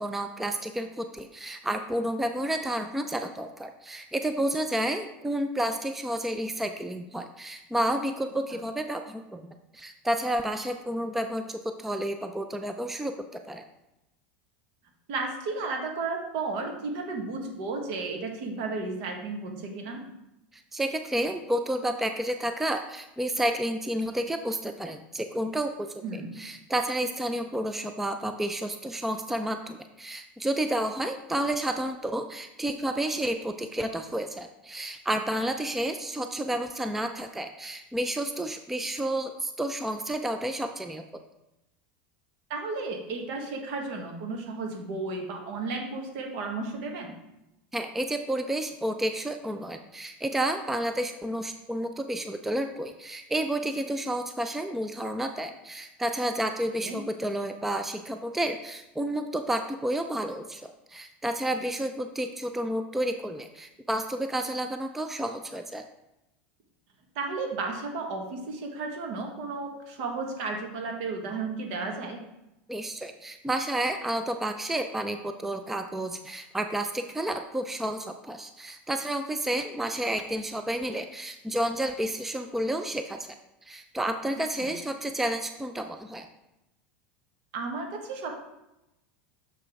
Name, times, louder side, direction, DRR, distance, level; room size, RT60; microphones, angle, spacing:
voice 1, 0.0-9.4 9.7-13.6 20.5-41.0 47.7-65.8 72.7-83.4 83.6-86.3, right 1 dB, 5° right, 7 dB, 0.4 m, -31 dB
voice 2, 15.1-20.0 26.0-26.4 42.5-47.1 56.8-57.0 67.1-72.2 84.3-84.7 87.5-88.4, right 3 dB, 65° right, 2 dB, 1.4 m, -33 dB
6.8 x 5.0 x 3.6 m, 0.91 s
supercardioid pair, 120°, 6 cm